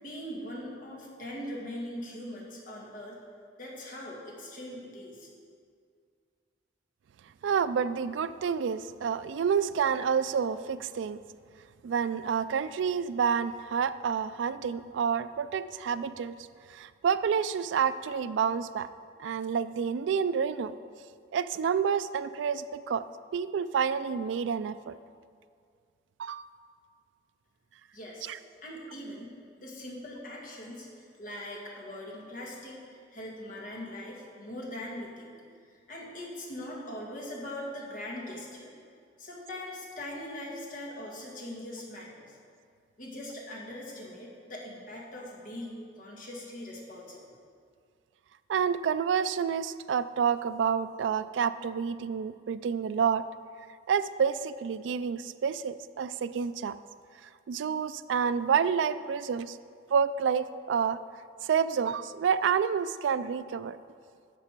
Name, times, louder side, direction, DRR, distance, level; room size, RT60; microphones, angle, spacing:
voice 1, 0.0-3.2 3.6-5.3 27.9-28.3 28.6-29.3 29.6-35.3 35.9-38.7 39.2-42.2 43.0-47.4, left 1 dB, 45° left, -3 dB, 1.8 m, -41 dB
voice 2, 7.4-11.2 11.8-16.4 16.7-18.9 19.2-20.8 21.3-23.0 23.3-25.0 26.2-26.5 28.3-28.4 48.5-53.2 53.9-56.7 57.5-59.6 59.9-61.0 61.4-63.8, right 7 dB, 75° right, 13 dB, 0.3 m, -29 dB
11.0 x 6.7 x 4.5 m, 2.2 s
head